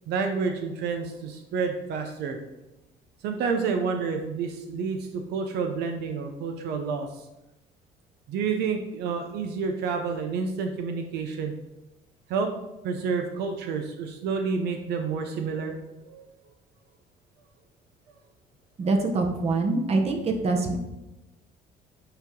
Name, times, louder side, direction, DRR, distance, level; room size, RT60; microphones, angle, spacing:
voice 1, 0.1-2.4 3.2-7.2 8.3-11.5 12.3-12.5 12.8-15.8 16.1-16.2, right 5 dB, 80° right, 4 dB, 0.7 m, -29 dB
voice 2, 18.8-20.8, right 3 dB, 40° right, 3 dB, 0.9 m, -24 dB
8.8 x 2.9 x 3.7 m, 0.97 s
cardioid pair, 110°, 17 cm